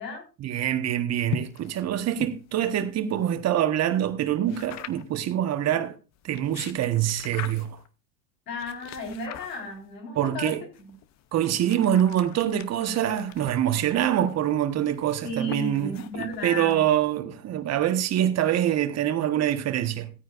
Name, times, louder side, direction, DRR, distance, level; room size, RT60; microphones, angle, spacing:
voice 1, 0.4-6.0 6.2-7.8 10.1-10.6 11.3-20.1, right 11 dB, 30° right, 1.4 m, -25 dB
sound 1, 1.3-3.4 4.5-5.2 6.2-7.9 8.6-9.9 10.7-17.2, left 10 dB, 35° left, 0.9 m, -42 dB
voice 2, 8.5-10.5 15.2-16.8, left 1 dB, 80° left, 4.7 m, -34 dB
16.0 x 9.2 x 2.6 m
hypercardioid pair, 100°, 48 cm